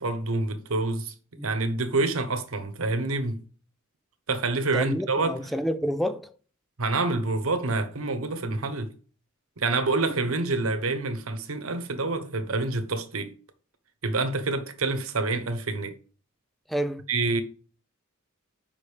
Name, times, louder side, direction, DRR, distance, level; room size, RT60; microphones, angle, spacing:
voice 1, 0.0-1.1 1.4-3.4 4.3-5.4 6.8-8.9 9.6-13.3 14.0-15.9 17.1-17.4, right 3 dB, 90° right, 1.1 m, -27 dB
voice 2, 4.7-6.3 16.7-17.0, equal, ahead, 0.4 m, -29 dB
5.5 x 5.3 x 6.4 m
head